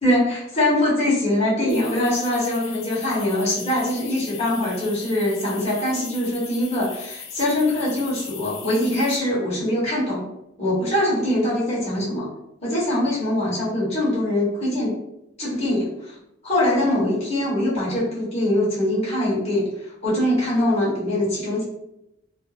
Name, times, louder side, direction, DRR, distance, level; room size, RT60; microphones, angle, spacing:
voice 1, 0.0-10.3 10.6-12.3 12.6-14.9 15.4-16.1 16.4-21.6, left 1 dB, 35° left, -8 dB, 1.0 m, -23 dB
sound 1, 1.7-9.2, left 7 dB, 75° left, 0.4 m, -39 dB
2.3 x 2.0 x 3.1 m, 0.86 s
head